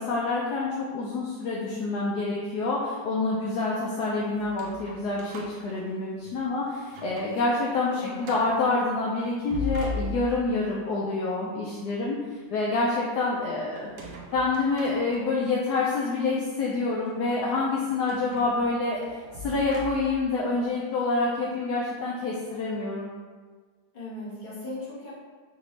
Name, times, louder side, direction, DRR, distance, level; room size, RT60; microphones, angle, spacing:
voice 1, 0.0-12.2 12.5-19.0 19.4-23.1, left 3 dB, 70° left, -4 dB, 1.0 m, -27 dB
sound 1, 4.3-6.4 6.8-7.4 7.7-7.8 8.2-8.6 9.3-10.6 13.8-15.5 16.2-16.3 18.1-20.3, left 1 dB, 90° right, 1.4 m, -39 dB
voice 2, 7.9-8.4 23.9-25.1, left 1 dB, 30° left, -9 dB, 1.3 m, -38 dB
4.9 x 2.7 x 3.1 m, 1.5 s
omnidirectional pair, 2.0 m